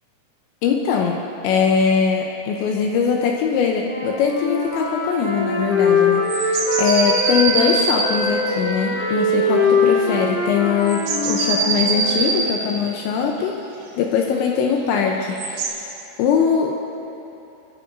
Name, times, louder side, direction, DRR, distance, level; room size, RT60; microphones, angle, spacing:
voice 1, 0.6-13.6 14.0-15.4 15.7-15.8 16.2-16.7, left 6 dB, 80° left, 1 dB, 2.9 m, -21 dB
Wind instrument woodwind instrument, 3.8-7.6 7.9-12.5, left 3 dB, 50° left, 5.2 m, -22 dB
sound 1, 6.3-8.1 9.2-9.6 9.9-10.2 10.8-12.5 15.0-15.7, right 4 dB, 85° right, 4.3 m, -23 dB
26.0 x 11.5 x 2.6 m, 2.9 s
omnidirectional pair, 5.5 m